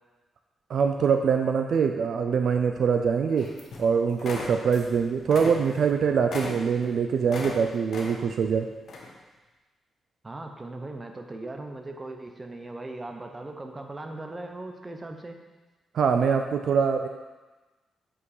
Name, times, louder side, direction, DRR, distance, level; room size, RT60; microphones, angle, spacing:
voice 1, 0.7-3.5 3.8-8.7 15.9-17.1, right 6 dB, 60° right, 5 dB, 0.5 m, -24 dB
sound 1, 3.4-3.9 4.2-4.9 5.2-7.6 7.9-8.4 8.9-9.1, left 3 dB, 55° left, 1.3 m, -37 dB
voice 2, 10.2-15.4, right 2 dB, 20° right, 4 dB, 0.7 m, -39 dB
8.1 x 5.0 x 4.9 m, 1.2 s
wide cardioid pair, 150°, 0 cm